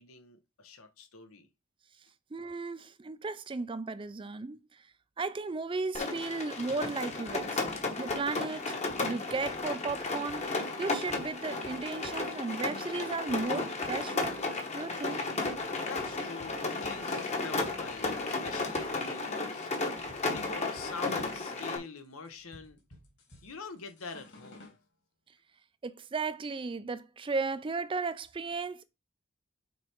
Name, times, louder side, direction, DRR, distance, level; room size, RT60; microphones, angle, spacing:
voice 1, 0.0-1.5 15.8-19.7 20.3-22.8 23.4-24.7, left 4 dB, 85° left, 1.1 m, -45 dB
voice 2, 2.3-4.6 5.2-7.6 8.0-10.4 10.8-14.4 14.7-15.2 25.8-28.8, right 3 dB, 25° right, 0.4 m, -35 dB
Rain, 5.9-21.8, left 3 dB, 30° left, 1.1 m, -34 dB
sound 1, 7.3-24.8, left 1 dB, 55° left, 2.3 m, -55 dB
6.2 x 4.2 x 3.6 m
head